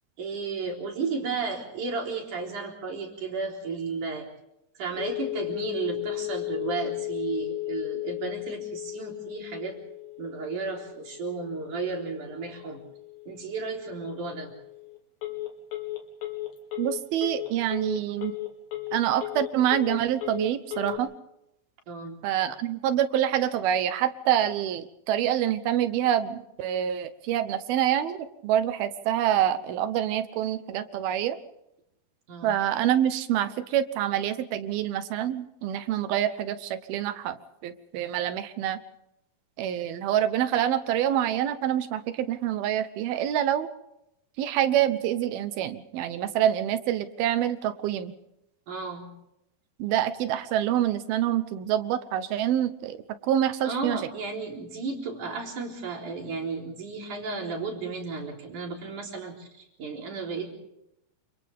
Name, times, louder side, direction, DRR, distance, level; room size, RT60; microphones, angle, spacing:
voice 1, 0.2-4.3 4.8-9.8 10.2-12.8 13.3-14.5 21.9-22.2 32.3-32.6 48.7-49.1 53.6-59.5 59.8-60.5, right 4 dB, 55° right, 0 dB, 5.1 m, -33 dB
Telephone, 4.9-21.0, left 18 dB, 70° left, 4.2 m, -36 dB
voice 2, 16.8-18.3 18.9-21.1 22.2-31.4 32.4-38.8 39.6-43.7 44.4-48.1 49.8-54.0, right 11 dB, 75° right, 12 dB, 2.7 m, -26 dB
28.5 x 27.5 x 3.6 m, 0.83 s
omnidirectional pair, 4.5 m